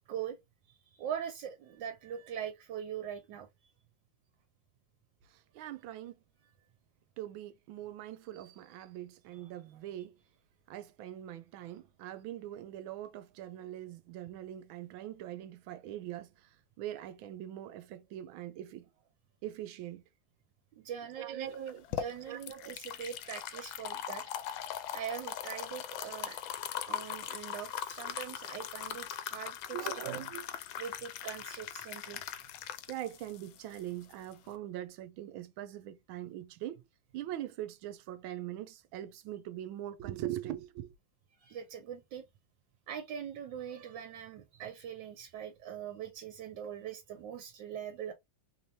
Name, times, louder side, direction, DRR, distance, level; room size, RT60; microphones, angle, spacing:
voice 1, 0.1-0.4 0.7-3.7 8.4-8.6 20.7-21.6 22.0-24.2 24.9-26.4 26.7-30.0 30.8-32.2 41.4-42.2 42.9-48.1, right 8 dB, 70° right, 1.3 m, -42 dB
voice 2, 5.5-6.2 7.2-10.2 10.7-16.5 16.8-18.9 19.4-20.0 21.2-21.8 22.3-22.7 23.5-23.6 29.7-30.5 32.9-36.8 37.1-40.9, right 12 dB, 90° right, 1.4 m, -42 dB
sound 1, 21.5-34.5, left 10 dB, 90° left, 1.4 m, -40 dB
3.3 x 3.2 x 2.7 m
omnidirectional pair, 2.1 m